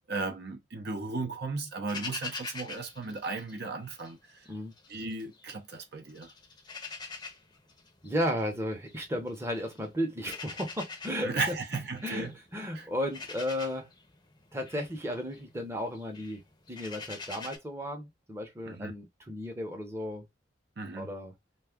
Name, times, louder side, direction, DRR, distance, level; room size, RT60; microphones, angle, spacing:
voice 1, 0.1-4.5 4.9-6.3 11.2-12.3 12.7-12.9 18.7-18.9 20.8-21.1, right 3 dB, 60° right, 0.7 m, -35 dB
sound 1, 1.9-4.1 4.5-5.8 6.1-17.6, left 4 dB, 25° left, 0.6 m, -44 dB
voice 2, 8.0-11.5 12.0-13.9 14.5-16.4 16.7-20.3 20.9-21.3, equal, 15° right, 0.7 m, -34 dB
2.6 x 2.3 x 3.5 m
head